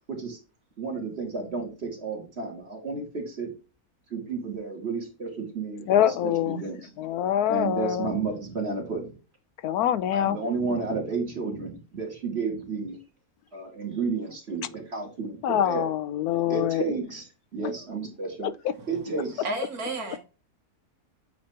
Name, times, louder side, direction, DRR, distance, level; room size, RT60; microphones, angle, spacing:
voice 1, 0.1-0.4 0.8-3.5 4.1-6.9 7.4-9.1 10.1-13.0 13.5-15.9 16.5-17.2 17.5-18.5 18.9-19.5, right 4 dB, 45° right, 2.5 m, -32 dB
voice 2, 5.9-6.6 7.0-8.1 9.6-10.4 15.4-16.8 18.4-18.5, left 11 dB, 85° left, 1.1 m, -24 dB
voice 3, 19.1-20.2, right 2 dB, 80° right, 2.0 m, -32 dB
8.4 x 3.2 x 4.2 m
omnidirectional pair, 1.6 m